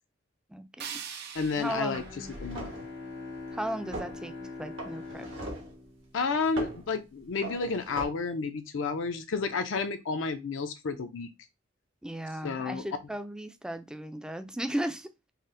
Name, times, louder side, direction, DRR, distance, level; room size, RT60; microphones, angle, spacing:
voice 1, 0.5-1.0 1.6-2.0 3.5-4.3 4.6-5.3 12.0-15.1, right 1 dB, 5° right, 0.3 m, -36 dB
sound 1, 0.8-3.8, right 7 dB, 55° right, 0.5 m, -44 dB
voice 2, 1.3-2.7 6.1-11.3 12.4-12.8, left 4 dB, 70° left, 0.5 m, -31 dB
sound 2, 1.4-1.6 1.9-2.9 3.9-4.2 4.8-5.7 6.5-6.8 7.4-8.1, right 2 dB, 85° right, 1.2 m, -40 dB
Bowed string instrument, 1.8-6.8, left 3 dB, 90° left, 1.5 m, -43 dB
4.2 x 2.1 x 3.7 m
head